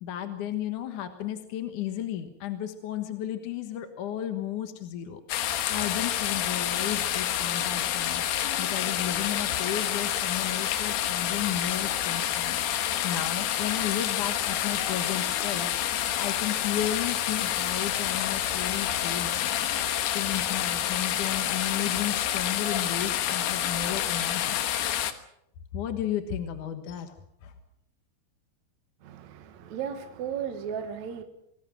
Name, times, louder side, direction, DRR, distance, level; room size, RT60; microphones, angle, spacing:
voice 1, 0.0-12.7 13.0-19.7 20.1-25.1 25.7-27.1 27.4-27.5, left 10 dB, 60° left, 7 dB, 2.5 m, -34 dB
sound 1, 5.3-25.1, left 11 dB, 85° left, 3.3 m, -28 dB
voice 2, 29.0-31.2, right 8 dB, 55° right, 7 dB, 2.5 m, -35 dB
26.0 x 20.0 x 6.1 m, 0.76 s
omnidirectional pair, 4.5 m